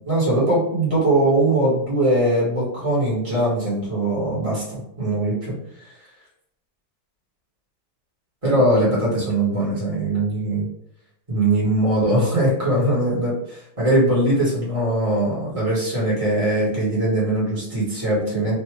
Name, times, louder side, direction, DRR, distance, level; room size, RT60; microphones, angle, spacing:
voice 1, 0.1-5.9 8.4-10.7 11.3-18.5, right 1 dB, 25° right, -7 dB, 1.3 m, -21 dB
3.4 x 2.5 x 3.0 m, 0.75 s
omnidirectional pair, 1.6 m